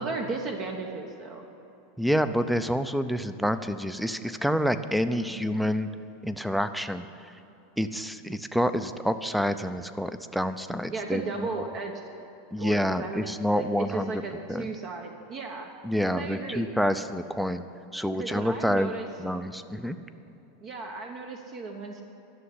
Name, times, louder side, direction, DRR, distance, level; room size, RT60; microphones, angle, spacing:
voice 1, 0.0-1.5 5.2-5.4 10.9-12.0 12.6-15.7 16.1-16.7 18.2-19.1 20.6-22.0, right 4 dB, 40° right, 3 dB, 1.0 m, -35 dB
voice 2, 2.0-5.9 6.2-7.3 7.8-11.7 12.5-14.2 14.5-14.7 15.8-17.6 17.9-18.9 19.2-20.0, equal, ahead, 11 dB, 0.5 m, -28 dB
11.5 x 6.8 x 9.7 m, 2.9 s
supercardioid pair, 125°, 0 cm